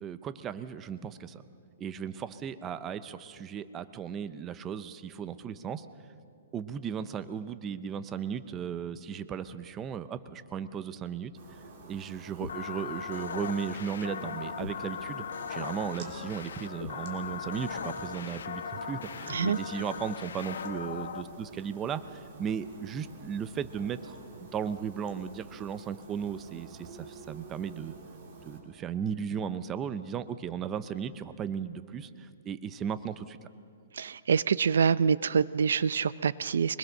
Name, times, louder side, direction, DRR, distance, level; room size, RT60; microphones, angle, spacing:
voice 1, 0.0-1.4 1.8-5.9 6.5-11.3 11.9-15.2 15.5-24.2 24.5-27.9 28.4-33.4, right 7 dB, 15° right, 13 dB, 0.5 m, -36 dB
sound 1, 11.4-28.6, right 3 dB, 35° right, 3.2 m, -50 dB
sound 2, 12.4-21.2, left 6 dB, 70° left, 1.1 m, -38 dB
voice 2, 19.3-19.6 33.9-36.8, right 6 dB, 75° right, 17 dB, 0.5 m, -26 dB
23.5 x 21.0 x 6.5 m, 2.3 s
hypercardioid pair, 170°, 0 cm